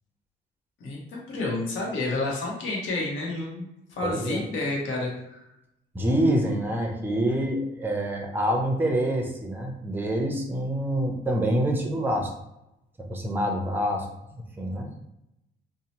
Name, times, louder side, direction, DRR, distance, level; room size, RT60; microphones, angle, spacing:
voice 1, 0.8-5.4, left 2 dB, 75° left, -2 dB, 0.9 m, -30 dB
voice 2, 4.0-4.4 5.9-12.3 13.0-14.9, right 1 dB, 10° right, 2 dB, 0.5 m, -26 dB
2.7 x 2.0 x 2.9 m, 0.84 s
cardioid pair, 90°, 20 cm